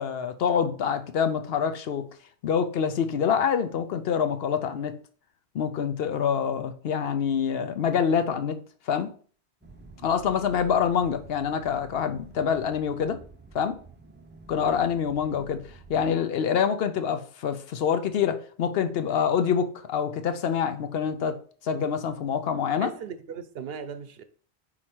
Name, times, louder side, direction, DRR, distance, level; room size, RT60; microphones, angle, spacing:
voice 1, 0.0-2.0 2.4-4.9 5.5-8.6 8.9-9.1 10.0-13.2 13.5-13.8 14.5-15.6 15.9-21.4 21.6-22.9, left 7 dB, 70° left, 0.8 m, -26 dB
sound 1, 9.6-16.2, right 2 dB, 15° right, 0.5 m, -49 dB
voice 2, 22.7-24.2, right 6 dB, 65° right, 0.8 m, -38 dB
4.9 x 4.4 x 4.4 m
omnidirectional pair, 1.1 m